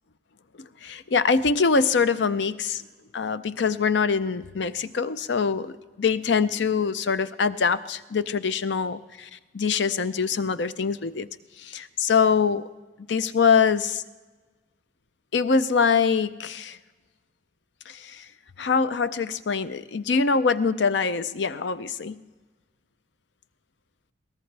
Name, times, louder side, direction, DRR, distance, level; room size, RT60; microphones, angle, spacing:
voice 1, 0.6-2.8 3.1-9.3 9.5-11.3 11.6-12.7 13.1-14.0 15.3-16.8 17.9-18.3 18.6-22.2, left 5 dB, 80° left, 14 dB, 0.6 m, -24 dB
22.0 x 18.5 x 3.3 m, 1.3 s
head